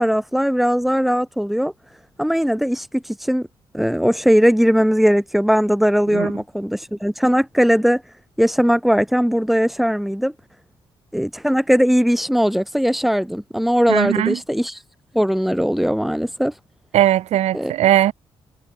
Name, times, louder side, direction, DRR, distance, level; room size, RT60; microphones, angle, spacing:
voice 1, 0.0-1.7 2.2-3.5 3.7-8.0 8.4-10.3 11.1-14.8 15.1-16.5 17.5-17.7, equal, ahead, 8.0 m, -19 dB
voice 2, 13.9-14.4 16.9-18.1, right 13 dB, 80° right, 3.5 m, -18 dB
supercardioid pair, 65°, 11 cm